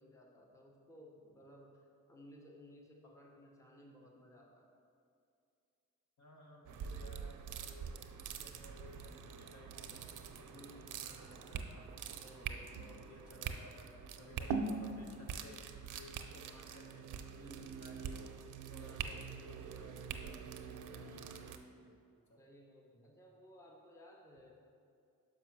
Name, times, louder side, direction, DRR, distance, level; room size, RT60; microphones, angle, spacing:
voice 1, 0.0-4.7 10.5-11.4 12.1-12.9 14.1-14.6 17.3-18.4 22.4-24.5, left 1 dB, 10° left, -1 dB, 0.8 m, -59 dB
voice 2, 6.2-7.9 8.2-11.9 12.4-17.1 17.8-18.4 18.7-20.5 20.8-22.0 22.3-22.4 22.9-23.1, left 1 dB, 65° left, -1 dB, 1.3 m, -57 dB
sound 1, 6.7-21.6, right 6 dB, 90° right, 0.5 m, -44 dB
5.9 x 5.2 x 5.9 m, 2.4 s
wide cardioid pair, 135°, 30 cm